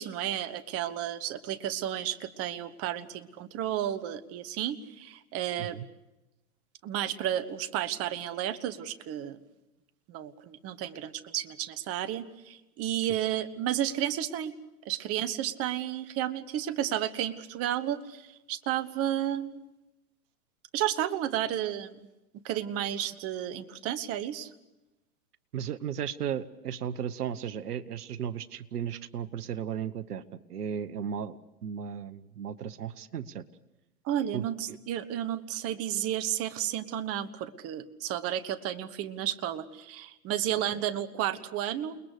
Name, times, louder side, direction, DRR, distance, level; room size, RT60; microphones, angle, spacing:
voice 1, 0.0-5.8 6.8-9.4 10.1-14.5 14.8-19.7 20.7-22.1 22.4-24.5 34.0-42.0, right 11 dB, 30° right, 14 dB, 1.3 m, -32 dB
voice 2, 25.5-33.4 34.3-34.8 40.7-40.8, right 8 dB, 80° right, 16 dB, 1.2 m, -35 dB
29.5 x 20.5 x 6.7 m, 0.98 s
hypercardioid pair, 120°, 45 cm